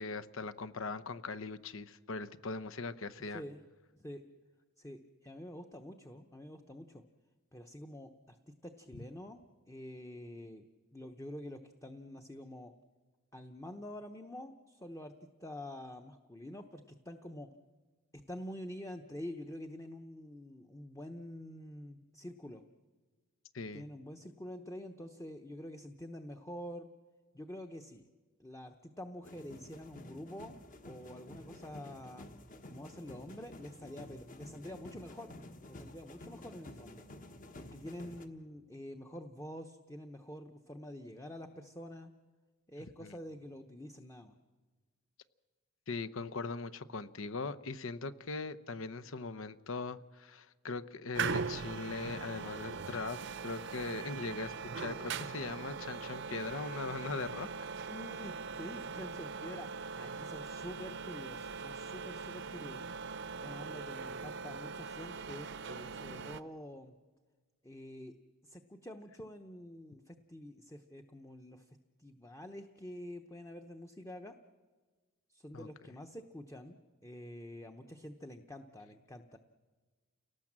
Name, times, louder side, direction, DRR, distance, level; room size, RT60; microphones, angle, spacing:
voice 1, 0.0-3.4 23.5-23.8 43.0-43.1 45.9-57.5 75.5-75.7, left 3 dB, 70° left, 12 dB, 0.9 m, -40 dB
voice 2, 3.3-3.6 3.9-4.2 4.8-7.0 7.5-10.6 10.9-12.7 13.3-15.1 15.4-17.5 18.3-22.6 23.7-26.9 27.3-28.0 28.4-30.6 30.9-32.3 32.6-35.4 35.7-37.0 37.6-42.1 42.7-44.3 57.8-62.8 63.4-66.9 67.6-68.1 68.4-74.4 75.3-76.8 77.0-79.4, left 1 dB, 15° left, 6 dB, 0.9 m, -47 dB
sound 1, 29.2-38.3, left 1 dB, 40° left, 1.4 m, -51 dB
sound 2, 51.1-66.4, right 5 dB, 60° right, 0.7 m, -41 dB
29.5 x 18.5 x 7.4 m, 1.4 s
head